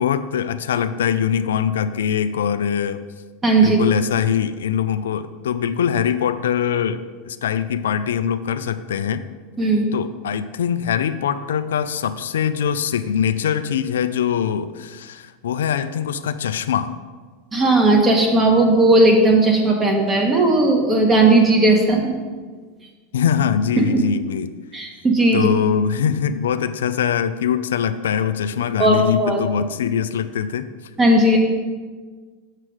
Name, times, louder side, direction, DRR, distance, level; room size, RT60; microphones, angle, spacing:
voice 1, 0.0-3.0 3.6-9.2 9.9-16.9 23.1-24.5 25.3-30.7, left 8 dB, 90° left, 11 dB, 0.4 m, -22 dB
voice 2, 3.4-3.8 9.6-9.8 17.5-22.0 24.7-25.5 28.8-29.4 31.0-31.4, right 2 dB, 20° right, 1 dB, 1.8 m, -16 dB
7.6 x 7.4 x 4.9 m, 1.4 s
hypercardioid pair, 115°, 0 cm